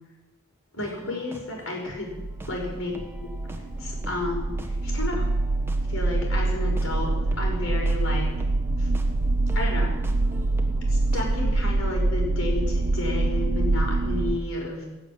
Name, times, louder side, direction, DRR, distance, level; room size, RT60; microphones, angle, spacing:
voice 1, 0.7-2.1 2.5-2.9 3.8-5.2 5.9-8.3 8.8-8.9 9.5-9.9 10.9-14.8, left 2 dB, 70° left, -1 dB, 5.6 m, -32 dB
sound 1, 0.8-11.4, right 1 dB, 10° right, 1.2 m, -44 dB
sound 2, 2.1-14.4, right 2 dB, 45° right, 0.7 m, -25 dB
17.5 x 7.4 x 8.8 m, 1.1 s
head